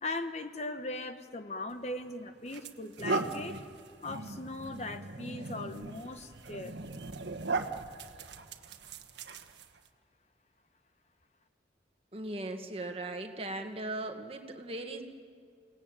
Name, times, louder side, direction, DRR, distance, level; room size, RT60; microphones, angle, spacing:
voice 1, 0.0-3.6 4.0-6.8, left 2 dB, 35° left, 8 dB, 1.0 m, -39 dB
sound 1, 1.7-1.9 2.5-9.9, right 3 dB, 75° right, 1.3 m, -38 dB
voice 2, 12.1-15.0, right 2 dB, 30° right, 5 dB, 1.8 m, -38 dB
29.0 x 18.5 x 9.1 m, 2.2 s
head